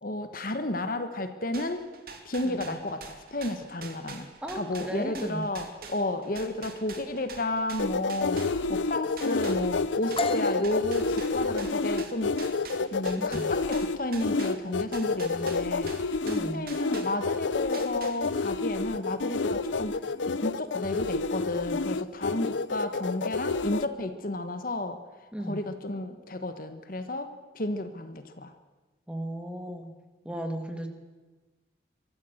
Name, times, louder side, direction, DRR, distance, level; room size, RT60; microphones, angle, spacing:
voice 1, 0.0-1.9 2.2-4.3 4.5-12.3 12.9-16.2 16.5-28.5, left 1 dB, 50° left, 8 dB, 1.4 m, -32 dB
sound 1, 1.5-8.9 9.2-17.4 17.7-18.6, right 4 dB, 50° right, 2.6 m, -45 dB
voice 2, 4.4-5.4 13.2-13.5 16.2-16.7 25.3-25.6 29.1-29.9 30.2-30.9, right 1 dB, 5° right, 5 dB, 1.9 m, -35 dB
sound 2, 7.8-23.8, left 4 dB, 85° left, 0.7 m, -29 dB
sound 3, 10.2-17.8, left 2 dB, 30° left, 1.4 m, -39 dB
24.0 x 14.0 x 8.0 m, 1.3 s
head